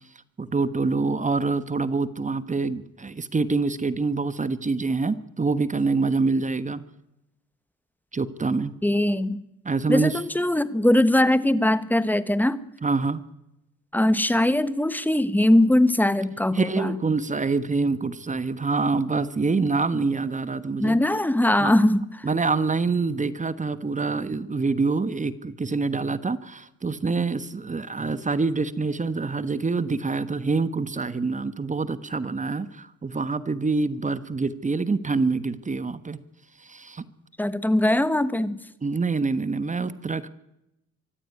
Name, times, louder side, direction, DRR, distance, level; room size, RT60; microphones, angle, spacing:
voice 1, 0.4-6.8 8.1-8.7 9.6-10.2 12.8-13.2 16.5-21.0 21.6-21.8 22.2-36.2 36.6-37.0 38.8-40.3, right 4 dB, 25° right, 14 dB, 1.3 m, -26 dB
voice 2, 8.8-9.4 9.9-12.6 13.9-17.0 20.8-22.3 37.4-38.6, left 1 dB, 5° left, 15 dB, 1.3 m, -21 dB
24.5 x 14.5 x 9.3 m, 0.87 s
cardioid pair, 90°, 30 cm